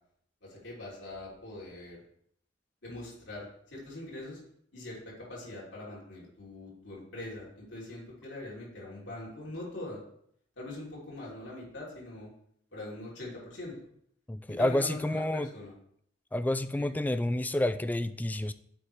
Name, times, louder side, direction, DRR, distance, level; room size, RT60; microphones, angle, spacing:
voice 1, 0.4-2.0 2.8-4.4 4.7-10.0 10.5-12.3 12.7-13.8 14.5-15.7 16.8-16.9, left 1 dB, 70° left, -5 dB, 3.3 m, -42 dB
voice 2, 14.3-15.5 16.3-18.5, left 1 dB, 10° left, 12 dB, 0.3 m, -29 dB
9.2 x 7.0 x 3.3 m, 0.68 s
head